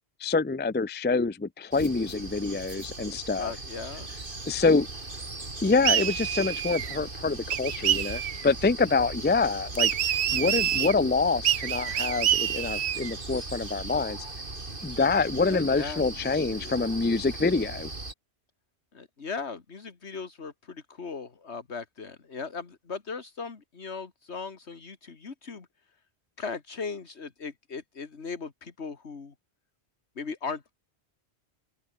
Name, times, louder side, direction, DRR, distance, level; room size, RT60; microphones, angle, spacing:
voice 1, 0.2-3.5 4.5-4.9 5.6-9.9 10.3-14.2 14.8-17.9, left 4 dB, 15° left, 0.4 m, -26 dB
Rainforest - Ferns Grotto (Kauai Hawaii), 1.7-18.1, right 2 dB, 50° right, 3.3 m, -39 dB
voice 2, 3.4-4.1 10.3-10.6 15.5-16.8 18.9-25.7 26.4-29.3 30.2-30.8, left 5 dB, 80° left, 2.2 m, -38 dB
sound 1, 5.8-7.0 7.5-8.5 9.8-10.9 11.4-13.1, right 11 dB, 75° right, 1.0 m, -27 dB
omnidirectional pair, 1.1 m